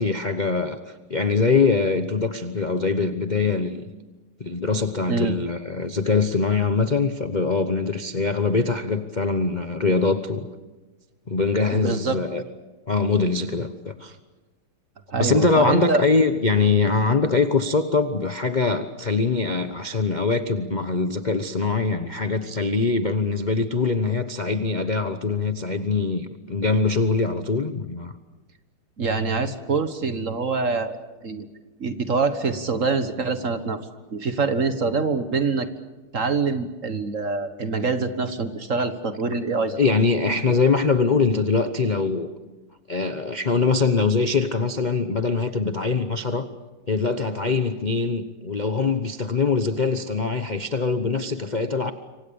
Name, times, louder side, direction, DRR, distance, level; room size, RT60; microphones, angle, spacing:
voice 1, 0.0-3.8 4.4-10.5 11.3-12.4 12.9-14.2 15.2-28.1 39.8-42.3 42.9-46.5 46.9-51.9, left 4 dB, 35° left, 9 dB, 0.7 m, -23 dB
voice 2, 11.7-12.2 15.1-16.0 29.0-31.5 31.8-33.8 34.1-35.7 36.1-39.8, right 4 dB, 40° right, 10 dB, 1.5 m, -25 dB
27.0 x 25.0 x 7.0 m, 1.2 s
omnidirectional pair, 2.3 m